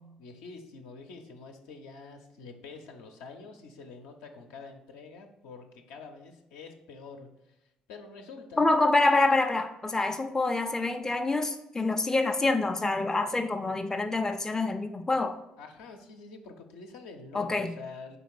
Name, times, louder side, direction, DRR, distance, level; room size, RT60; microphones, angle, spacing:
voice 1, 0.2-7.5 7.9-8.8 15.6-18.2, left 4 dB, 65° left, 4 dB, 0.7 m, -46 dB
voice 2, 8.6-15.4 17.3-17.8, left 2 dB, 15° left, 6 dB, 0.5 m, -26 dB
5.3 x 3.7 x 4.7 m, 0.90 s
figure-of-eight pair, 50°, 4 cm